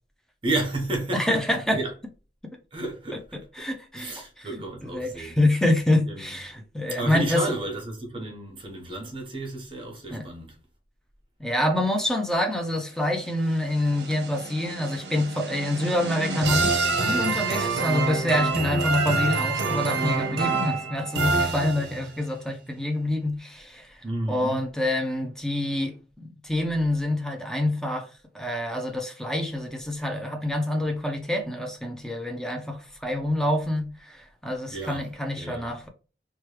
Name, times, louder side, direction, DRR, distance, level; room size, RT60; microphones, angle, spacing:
voice 1, 0.4-1.9 2.7-3.7 3.9-5.4 6.1-6.4 6.9-10.6 24.0-24.7 34.7-35.0 35.3-35.7, right 2 dB, 30° right, 1.0 m, -32 dB
voice 2, 1.1-1.8 3.6-7.4 10.1-10.3 11.4-28.1 28.3-35.9, left 1 dB, 5° left, 0.5 m, -27 dB
sound 1, 13.3-22.2, right 3 dB, 70° right, 0.7 m, -27 dB
3.0 x 2.3 x 3.1 m
head